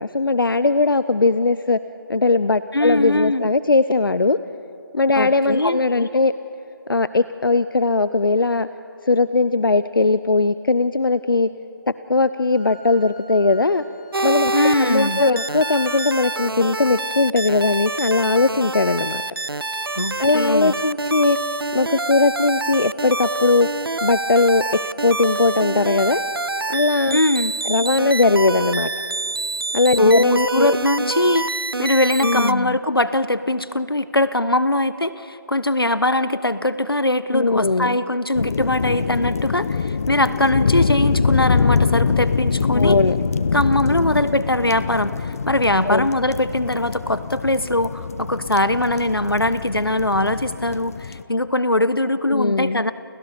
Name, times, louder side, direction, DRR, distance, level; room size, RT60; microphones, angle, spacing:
voice 1, 0.0-1.8 2.1-4.4 4.9-6.3 6.9-8.7 9.0-11.5 12.1-13.8 14.2-14.5 14.8-19.2 20.2-21.4 21.7-23.7 24.0-26.2 26.7-27.2 27.6-28.9 29.7-30.8 32.2-32.8 37.3-38.0 42.7-43.2 43.9-44.2 45.9-46.1 52.3-52.8, left 3 dB, 70° left, 14 dB, 0.7 m, -19 dB
voice 2, 2.7-3.4 5.2-5.8 14.5-15.2 19.9-20.7 27.1-27.5 30.0-31.4 31.8-43.0 43.5-52.9, left 1 dB, 85° left, 14 dB, 1.2 m, -21 dB
Wind instrument woodwind instrument, 12.5-16.4, left 2 dB, 5° left, 3.0 m, -44 dB
sound 1, 14.1-32.5, right 3 dB, 85° right, 0.6 m, -26 dB
sound 2, 38.4-51.2, left 5 dB, 40° left, 0.9 m, -24 dB
29.5 x 29.0 x 5.2 m, 2.8 s
figure-of-eight pair, 150°, 12 cm